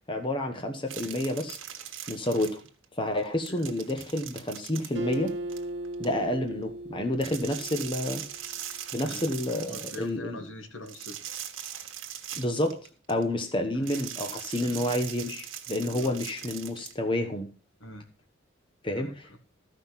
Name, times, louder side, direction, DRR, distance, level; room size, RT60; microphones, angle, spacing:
voice 1, 0.1-1.6 2.1-2.6 3.0-5.3 6.0-8.2 8.9-10.4 12.4-12.7 13.1-17.5 18.8-19.1, left 1 dB, 25° left, 5 dB, 1.1 m, -29 dB
sound 1, 0.9-2.8 3.2-6.1 7.1-10.1 10.9-13.2 13.8-16.9, right 10 dB, 85° right, 1.5 m, -40 dB
Acoustic guitar, 4.9-8.4, right 1 dB, 60° right, 1.5 m, -37 dB
voice 2, 9.0-9.3 9.6-11.2 13.7-13.9 14.5-15.0 15.8-16.1 17.8-18.1 18.9-19.4, left 1 dB, 70° left, 6 dB, 1.8 m, -43 dB
14.0 x 5.7 x 5.9 m, 0.39 s
head